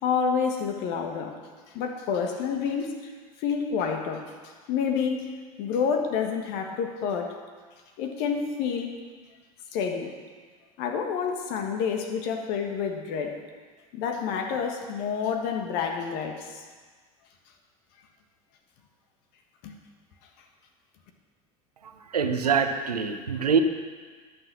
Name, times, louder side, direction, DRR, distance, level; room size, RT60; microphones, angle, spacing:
voice 1, 0.0-1.3 1.7-3.1 3.4-7.4 8.0-9.0 9.7-10.1 10.8-13.4 13.9-16.6 19.6-19.7, left 6 dB, 55° left, 4 dB, 1.6 m, -29 dB
voice 2, 22.1-23.6, right 6 dB, 90° right, 7 dB, 0.9 m, -24 dB
11.0 x 6.7 x 6.2 m, 1.5 s
hypercardioid pair, 85°, 19 cm